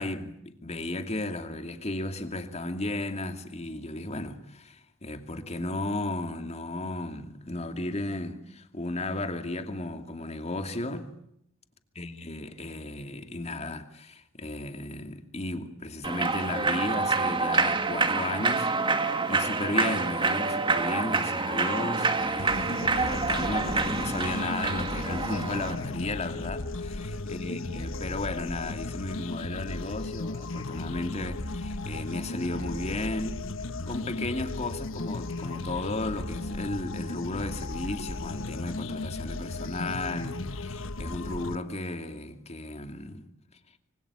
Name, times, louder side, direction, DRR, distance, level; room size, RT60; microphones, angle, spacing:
voice 1, 0.0-11.1 12.0-18.7 19.0-33.4 33.9-43.2, left 2 dB, 30° left, 2.6 m, -34 dB
Human voice / Clapping / Cheering, 16.0-25.7, right 4 dB, 25° right, 2.0 m, -27 dB
sound 1, 22.4-41.5, left 2 dB, 70° left, 1.3 m, -35 dB
26.0 x 24.5 x 8.7 m
head